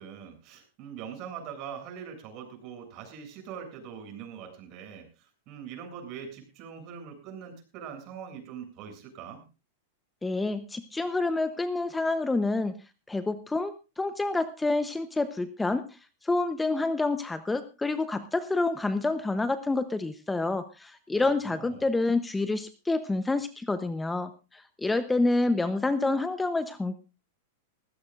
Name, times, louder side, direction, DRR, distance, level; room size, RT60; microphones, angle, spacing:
voice 1, 0.0-9.4 21.1-21.9, right 7 dB, 45° right, 3 dB, 7.5 m, -42 dB
voice 2, 10.2-12.7 13.1-15.8 16.2-27.0, left 2 dB, 10° left, 11 dB, 0.9 m, -28 dB
20.0 x 16.0 x 2.5 m, 0.31 s
hypercardioid pair, 120°, 0 cm